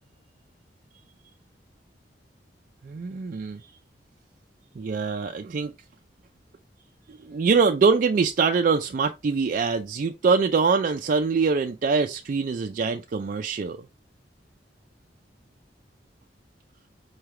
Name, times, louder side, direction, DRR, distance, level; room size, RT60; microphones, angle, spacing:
voice 1, 2.8-3.6 4.8-5.7 7.1-13.8, right 5 dB, 50° right, 0.4 m, -24 dB
4.7 x 3.2 x 3.2 m
head